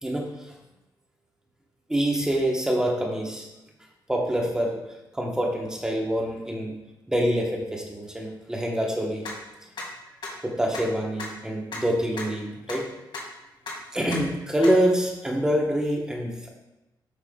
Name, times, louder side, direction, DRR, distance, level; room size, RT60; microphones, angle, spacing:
voice 1, 0.0-0.5 1.9-3.5 4.1-4.8 5.1-6.8 7.1-9.2 10.4-12.9 13.9-16.5, equal, 10° right, -1 dB, 1.1 m, -26 dB
sound 1, 9.2-9.3 9.7-9.8 10.2-10.3 10.7-10.8 11.2-11.3 11.7-11.8 12.2-12.3 12.7-12.8 13.1-13.2 13.6-13.7 14.1-14.2 14.6-14.7, left 4 dB, 70° left, 2.0 m, -34 dB
8.2 x 5.8 x 2.3 m, 0.96 s
wide cardioid pair, 140°, 8 cm